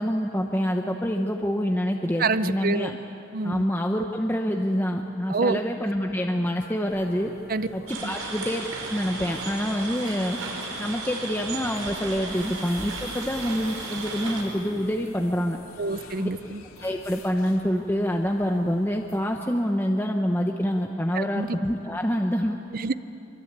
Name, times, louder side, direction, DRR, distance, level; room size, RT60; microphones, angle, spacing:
voice 1, 0.0-3.0 3.4-7.3 7.7-10.4 10.8-15.6 16.2-16.3 16.8-22.6, equal, 10° left, 2 dB, 0.9 m, -26 dB
voice 2, 2.2-2.9 3.3-3.6 5.3-5.6 7.5-7.7 8.0-8.1 15.8-16.6 21.1-21.5 22.7-22.9, right 3 dB, 40° right, 13 dB, 0.6 m, -27 dB
sound 1, 6.9-19.4, left 2 dB, 85° left, 2.4 m, -48 dB
sound 2, 7.9-14.4, right 3 dB, 90° right, 5.3 m, -35 dB
24.0 x 23.5 x 9.0 m, 2.9 s
head